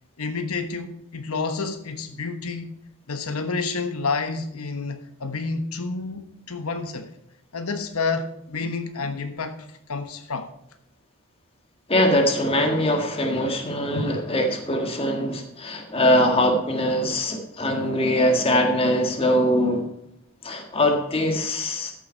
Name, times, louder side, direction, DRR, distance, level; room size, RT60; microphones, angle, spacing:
voice 1, 0.2-2.7 3.1-7.1 7.5-9.6 9.9-10.5 17.5-17.6, left 4 dB, 80° left, 1.2 m, -29 dB
voice 2, 11.9-19.9 20.4-21.9, equal, 25° left, 1.7 m, -22 dB
13.5 x 6.9 x 4.5 m
head